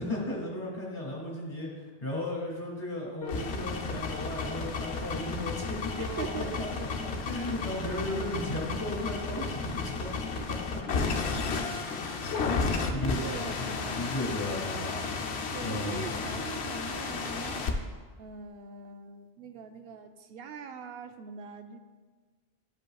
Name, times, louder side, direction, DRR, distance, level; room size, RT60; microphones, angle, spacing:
voice 1, 0.0-1.7 2.0-10.3 12.4-15.1 15.6-16.1, left 1 dB, 35° left, -3 dB, 1.8 m, -35 dB
sound 1, 3.2-17.7, left 4 dB, 80° left, 1.0 m, -33 dB
voice 2, 6.0-6.9 10.2-10.5 12.1-17.9 18.2-21.8, right 6 dB, 70° right, 8 dB, 0.7 m, -43 dB
11.5 x 5.3 x 2.3 m, 1.4 s
omnidirectional pair, 1.1 m